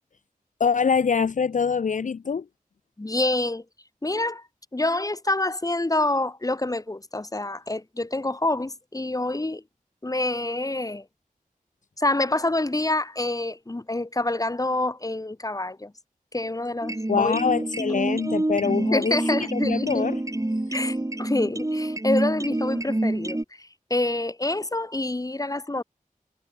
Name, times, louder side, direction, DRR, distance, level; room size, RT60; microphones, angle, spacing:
voice 1, 0.6-2.4 17.1-19.2 19.5-20.2, left 6 dB, 60° left, 0.5 m, -24 dB
voice 2, 3.0-3.6 4.0-4.4 4.7-9.6 10.0-11.0 12.0-15.9 16.3-17.3 18.9-20.1 20.7-25.8, left 2 dB, 25° left, 1.2 m, -27 dB
sound 1, 16.8-23.4, right 1 dB, 20° right, 2.4 m, -27 dB
wide cardioid pair, 75°, 15 cm